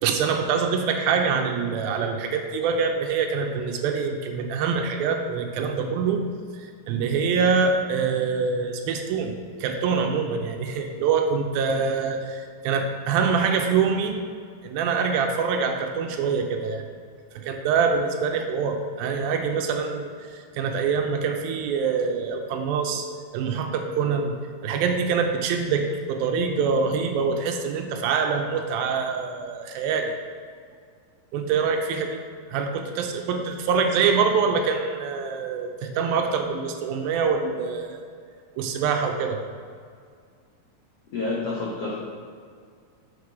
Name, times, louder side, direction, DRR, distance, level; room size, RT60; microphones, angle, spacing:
voice 1, 0.0-6.2 6.5-9.3 9.6-14.2 14.6-16.8 17.4-23.1 23.3-24.4 24.6-30.1 31.3-32.2 32.5-38.0 38.6-39.4, right 5 dB, 85° right, 4 dB, 2.4 m, -25 dB
voice 2, 41.1-42.0, left 3 dB, 85° left, -5 dB, 1.4 m, -28 dB
6.6 x 6.5 x 4.7 m, 2.1 s
omnidirectional pair, 4.3 m